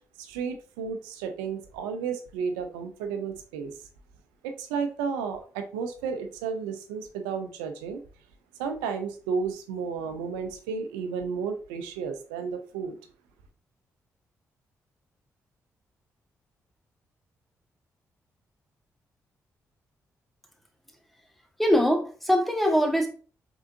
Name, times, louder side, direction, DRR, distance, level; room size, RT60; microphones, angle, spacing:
voice 1, 0.2-3.9 4.4-8.0 8.6-13.0, right 6 dB, 90° right, 0.5 m, -32 dB
voice 2, 21.6-23.1, equal, ahead, 1.5 m, -22 dB
4.8 x 3.8 x 2.6 m
hypercardioid pair, 45°, 7 cm